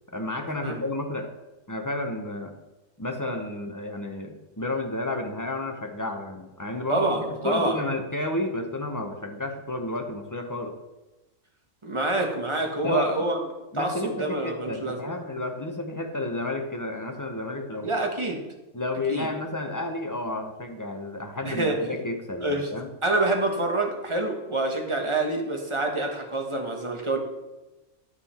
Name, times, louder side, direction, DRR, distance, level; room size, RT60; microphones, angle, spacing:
voice 1, 0.1-1.3 1.7-2.5 3.0-7.1 7.4-10.7 12.8-13.2 13.7-17.9 18.7-22.9, left 2 dB, 20° left, 4 dB, 0.6 m, -31 dB
voice 2, 6.9-7.8 11.8-13.4 13.7-15.1 17.8-18.4 19.1-19.3 21.4-21.8 22.4-22.7 23.0-27.2, right 2 dB, 25° right, 2 dB, 1.1 m, -26 dB
9.8 x 5.5 x 4.3 m, 1.0 s
omnidirectional pair, 1.3 m